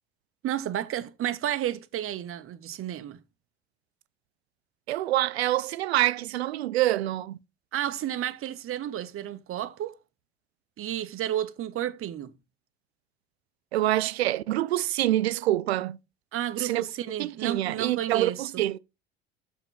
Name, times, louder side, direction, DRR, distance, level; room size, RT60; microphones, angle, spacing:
voice 1, 0.4-3.2 7.7-10.0 10.8-12.3 16.3-18.6, right 11 dB, 45° right, 1.0 m, -32 dB
voice 2, 4.9-7.4 13.7-16.0 16.6-16.8 17.2-18.8, right 14 dB, 85° right, 0.5 m, -26 dB
6.6 x 5.7 x 3.9 m
hypercardioid pair, 70°, 31 cm